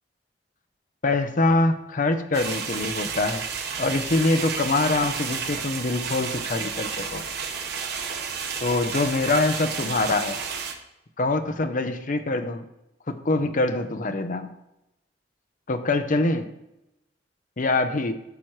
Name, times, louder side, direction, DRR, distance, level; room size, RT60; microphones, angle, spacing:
voice 1, 1.0-3.4 3.8-7.2 8.6-10.4 11.2-12.6 13.1-14.5 15.7-16.5 17.6-18.1, left 2 dB, 50° left, 8 dB, 0.7 m, -24 dB
sound 1, 2.3-10.7, right 6 dB, 65° right, 1.0 m, -31 dB
13.5 x 5.9 x 3.2 m, 0.89 s
head